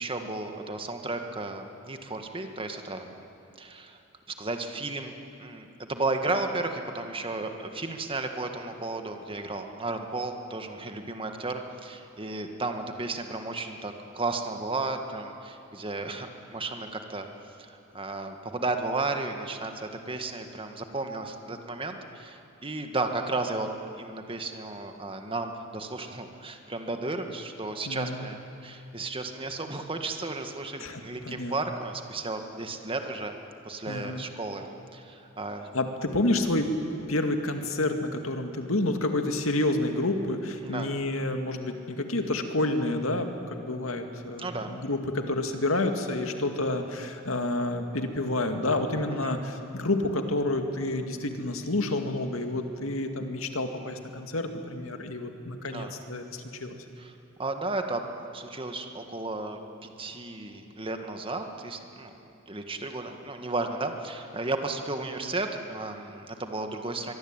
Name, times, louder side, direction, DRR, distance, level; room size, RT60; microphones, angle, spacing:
voice 1, 0.0-3.1 3.6-4.0 4.4-5.1 5.4-17.3 17.6-23.7 24.0-33.3 33.6-34.6 34.9-35.7 40.6-40.9 44.4-44.7 49.2-49.3 55.6-55.9 57.0-57.1 57.4-58.0 58.3-62.1 62.5-67.1, right 2 dB, 25° right, 5 dB, 1.8 m, -34 dB
voice 2, 27.9-28.3 30.8-31.5 33.9-34.3 35.7-36.7 37.1-56.8, left 2 dB, 90° left, 5 dB, 2.2 m, -29 dB
23.5 x 22.5 x 9.0 m, 2.8 s
head